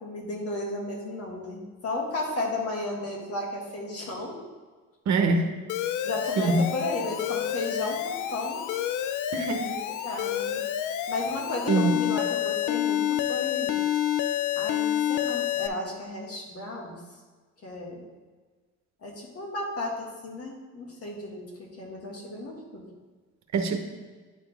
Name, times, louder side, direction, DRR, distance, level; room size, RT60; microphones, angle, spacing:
voice 1, 0.0-4.4 6.0-8.6 9.6-10.6 11.1-13.8 14.6-16.9 17.6-18.0 19.0-22.8, left 2 dB, 50° left, -1 dB, 1.8 m, -34 dB
voice 2, 5.1-5.5 6.4-6.6 9.3-9.7 11.7-11.9 23.5-23.8, right 4 dB, 65° right, 5 dB, 0.9 m, -23 dB
Alarm, 5.7-15.7, left 11 dB, 80° left, 0.5 m, -28 dB
9.9 x 4.2 x 3.4 m, 1.4 s
cardioid pair, 90°, 30 cm